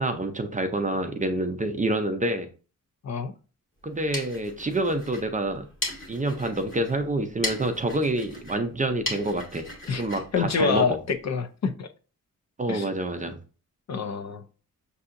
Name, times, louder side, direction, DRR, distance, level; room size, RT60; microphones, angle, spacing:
voice 1, 0.0-2.5 3.8-5.7 6.1-10.9 12.6-13.4, right 1 dB, 25° right, 6 dB, 0.5 m, -27 dB
sound 1, 3.8-11.3, left 1 dB, 35° left, 1.8 m, -38 dB
voice 2, 10.3-11.9 12.7-12.9 13.9-14.4, left 5 dB, 55° left, 7 dB, 0.5 m, -26 dB
6.7 x 2.7 x 2.5 m, 0.36 s
wide cardioid pair, 140°, 34 cm